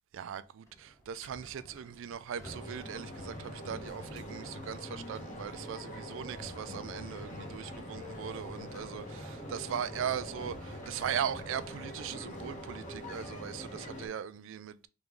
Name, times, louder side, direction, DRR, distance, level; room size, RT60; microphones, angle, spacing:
voice 1, 0.1-14.9, right 8 dB, 65° right, 0.3 m, -39 dB
sound 1, 0.6-11.9, equal, 15° left, 0.9 m, -53 dB
sound 2, 2.4-14.1, equal, 40° left, 1.1 m, -44 dB
3.5 x 3.0 x 3.7 m
head